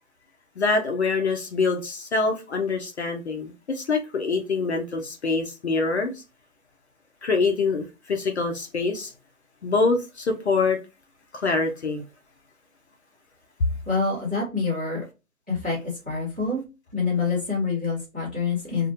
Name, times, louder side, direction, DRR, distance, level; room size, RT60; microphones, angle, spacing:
voice 1, 0.6-6.2 7.2-9.1 9.6-10.8 11.3-12.0, left 4 dB, 50° left, 4 dB, 0.5 m, -25 dB
voice 2, 13.8-15.0 15.5-15.8 16.0-16.6 16.9-18.9, left 4 dB, 10° right, -14 dB, 0.5 m, -26 dB
2.4 x 2.1 x 2.6 m, 0.28 s
figure-of-eight pair, 150°, 44 cm